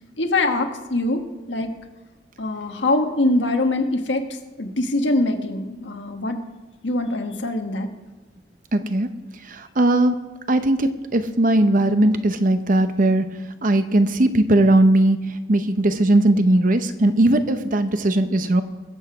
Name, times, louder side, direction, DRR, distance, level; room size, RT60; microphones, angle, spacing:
voice 1, 0.2-1.2 1.5-1.7 2.4-4.3 4.6-6.4 6.8-7.9, left 2 dB, 85° left, 5 dB, 1.5 m, -23 dB
voice 2, 8.7-9.1 9.5-10.1 10.5-13.2 13.6-15.2 15.5-18.6, right 1 dB, 50° right, 9 dB, 0.9 m, -18 dB
21.0 x 8.0 x 4.9 m, 1.1 s
head